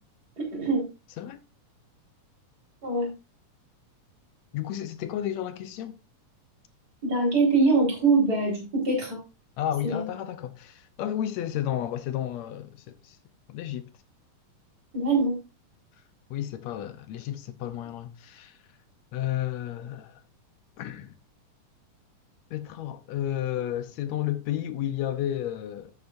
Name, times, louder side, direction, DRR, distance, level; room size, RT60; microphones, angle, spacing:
voice 1, 0.4-0.9 2.8-3.1 7.0-9.2 9.8-10.1 14.9-15.4, right 3 dB, 25° right, 4.7 m, -23 dB
voice 2, 4.5-6.0 9.6-13.2 13.5-13.9 16.3-18.5 19.1-20.2 20.8-21.1 22.5-25.9, left 11 dB, 70° left, 1.8 m, -32 dB
12.0 x 8.2 x 2.6 m
omnidirectional pair, 3.7 m